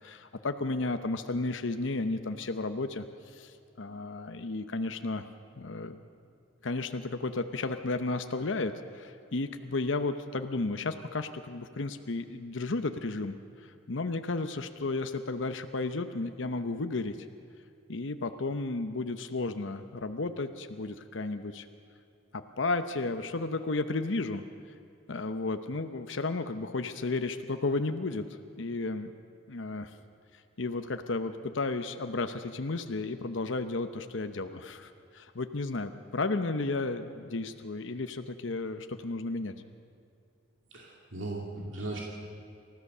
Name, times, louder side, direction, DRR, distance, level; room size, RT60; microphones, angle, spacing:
voice 1, 0.0-5.2 5.6-6.1 6.6-17.2 17.9-21.7 22.3-24.4 25.1-28.3 28.6-29.1 29.5-29.9 30.6-39.5, left 3 dB, 75° left, 8 dB, 0.8 m, -33 dB
voice 2, 40.7-42.0, right 2 dB, 80° right, -2 dB, 2.4 m, -37 dB
28.0 x 14.0 x 6.7 m, 2.5 s
head